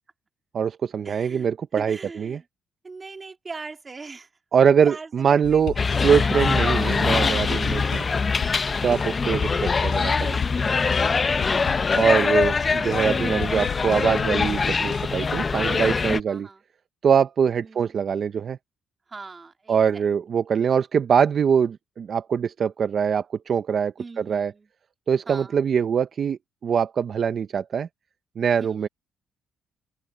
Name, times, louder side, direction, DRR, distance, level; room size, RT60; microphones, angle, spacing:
voice 1, 0.5-2.4 4.5-5.7 6.0-8.0 8.8-10.4 11.9-16.5 17.0-18.6 19.7-24.5 25.1-27.9 28.4-28.9, right 7 dB, 55° right, 0.7 m, -23 dB
voice 2, 1.0-1.5 1.8-2.4 2.8-4.3 4.8-6.2 8.0-8.3 8.8-9.1 15.5-16.0 16.3-16.6 17.6-17.9 19.1-20.0 24.0-24.7 25.3-25.6 28.5-28.9, right 4 dB, 30° right, 2.8 m, -41 dB
sound 1, 5.4-15.1, left 10 dB, 70° left, 4.8 m, -37 dB
sound 2, 5.8-16.2, left 4 dB, 35° left, 0.6 m, -23 dB
open air
cardioid pair, 90°, 0 cm